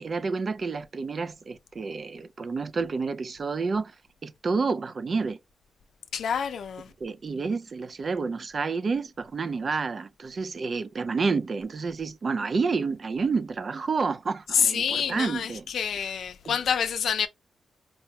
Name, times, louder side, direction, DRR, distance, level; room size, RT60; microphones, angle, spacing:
voice 1, 0.0-3.9 4.2-5.4 7.0-15.6, right 4 dB, 45° right, 0.4 m, -29 dB
voice 2, 6.1-6.9 14.5-17.3, left 7 dB, 80° left, 0.4 m, -27 dB
4.5 x 2.1 x 2.8 m
wide cardioid pair, 110°, 0 cm